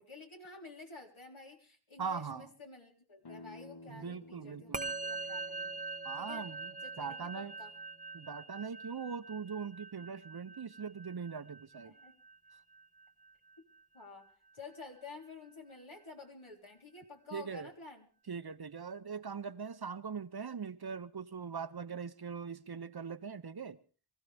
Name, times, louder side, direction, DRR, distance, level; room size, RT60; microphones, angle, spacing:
voice 1, 0.0-5.7 6.2-6.5 6.8-7.7 10.0-10.2 11.8-12.2 13.6-13.7 13.9-18.1, left 3 dB, 70° left, 3.6 m, -51 dB
voice 2, 2.0-2.5 3.9-5.0 6.0-6.7 7.0-7.5 8.1-11.9 17.3-17.7 18.3-23.8, right 6 dB, 50° right, 0.8 m, -41 dB
sound 1, 3.2-8.8, left 2 dB, 50° left, 1.3 m, -56 dB
Musical instrument, 4.7-14.3, right 3 dB, 15° right, 0.8 m, -44 dB
24.0 x 15.5 x 3.4 m
wide cardioid pair, 50°, 49 cm